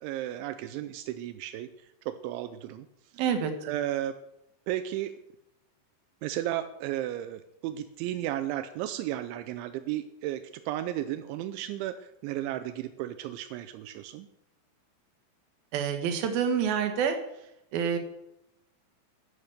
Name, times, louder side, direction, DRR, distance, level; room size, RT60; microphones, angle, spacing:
voice 1, 0.0-1.7 2.1-2.9 3.6-4.2 4.7-5.2 6.2-14.3, right 13 dB, 85° right, 10 dB, 3.0 m, -34 dB
voice 2, 3.1-3.5 15.7-17.2 17.7-18.0, right 7 dB, 60° right, 6 dB, 3.0 m, -27 dB
13.0 x 11.0 x 6.6 m, 0.83 s
omnidirectional pair, 5.4 m